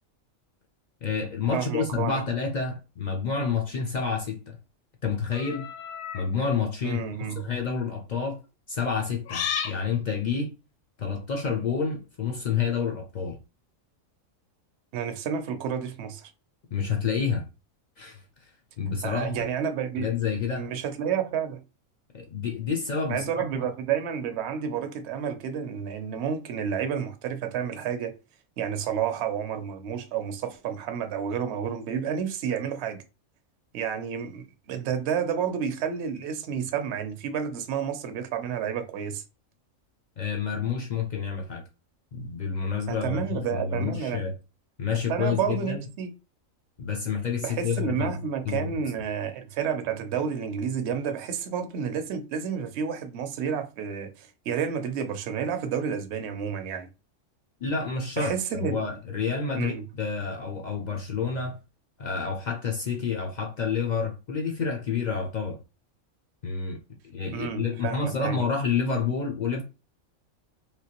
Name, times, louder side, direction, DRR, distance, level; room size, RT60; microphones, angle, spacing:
voice 1, 1.0-4.6 5.0-5.7 6.1-7.0 7.3-8.4 8.7-10.5 11.0-13.4 16.7-17.4 18.0-18.2 18.8-19.5 20.0-20.7 22.1-23.7 40.2-41.6 42.1-44.3 44.8-45.8 46.8-48.1 48.5-48.8 57.6-61.6 62.0-65.6 66.4-66.8 67.0-69.6, left 5 dB, 65° left, 0.4 m, -29 dB
voice 2, 1.5-2.2 6.8-7.4 14.9-16.3 19.0-20.1 20.5-21.6 23.1-28.1 28.6-33.0 33.7-39.2 42.9-44.2 45.1-46.1 47.4-56.9 58.2-58.8 59.5-59.8 67.3-68.4, right 7 dB, 65° right, 0.8 m, -30 dB
sound 1, 5.3-6.3 7.1-7.4 9.3-9.8, left 8 dB, 80° left, 1.0 m, -32 dB
3.4 x 2.8 x 2.9 m
omnidirectional pair, 1.4 m